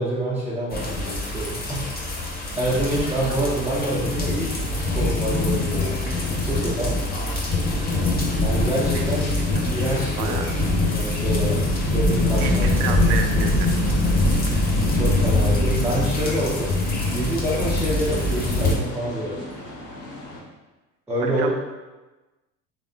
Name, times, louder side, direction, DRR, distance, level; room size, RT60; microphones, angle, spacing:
voice 1, 0.0-1.9 2.6-6.0 6.4-7.0 8.3-9.4 9.6-10.4 10.9-13.0 14.9-16.8 17.1-19.4 21.1-21.5, right 1 dB, 5° right, -9 dB, 0.3 m, -27 dB
sound 1, 0.7-18.8, left 2 dB, 20° left, 0.7 m, -23 dB
sound 2, 2.6-20.4, left 1 dB, 75° left, 1.0 m, -39 dB
voice 2, 12.4-13.7 14.5-14.7 21.2-21.5, right 7 dB, 65° right, 5 dB, 0.6 m, -30 dB
3.5 x 3.4 x 2.5 m, 1.2 s
figure-of-eight pair, 65°, 50 cm